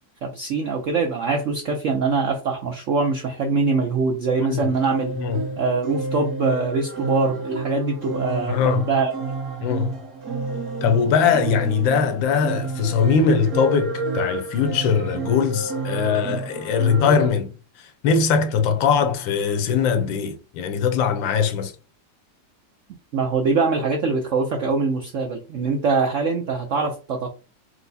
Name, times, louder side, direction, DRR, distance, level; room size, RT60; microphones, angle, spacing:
voice 1, 0.2-5.2 5.6-9.1 23.1-27.4, right 4 dB, 70° right, 0.7 m, -23 dB
voice 2, 4.4-4.7 5.2-5.5 8.5-8.9 9.6-10.0 10.8-21.7, left 6 dB, 80° left, 1.4 m, -21 dB
sound 1, 4.7-17.3, right 3 dB, 45° right, 1.2 m, -30 dB
4.6 x 2.1 x 4.0 m
omnidirectional pair, 2.1 m